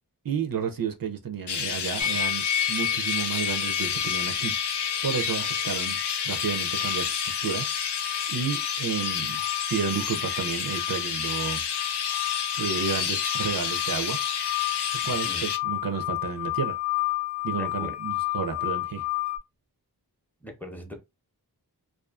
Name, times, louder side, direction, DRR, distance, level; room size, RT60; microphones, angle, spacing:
voice 1, 0.2-4.5 5.0-6.0 6.2-7.9 8.3-9.4 9.7-11.6 12.6-14.2 15.0-16.8 17.4-19.0, right 6 dB, 60° right, 0.5 m, -31 dB
Chirp tweet, 1.5-15.6, left 7 dB, 90° left, 0.5 m, -30 dB
sound 1, 2.0-19.4, left 14 dB, 45° left, 0.6 m, -32 dB
voice 2, 17.5-17.9 20.4-21.0, equal, 5° left, 0.6 m, -40 dB
2.4 x 2.4 x 2.3 m
wide cardioid pair, 50°, 40 cm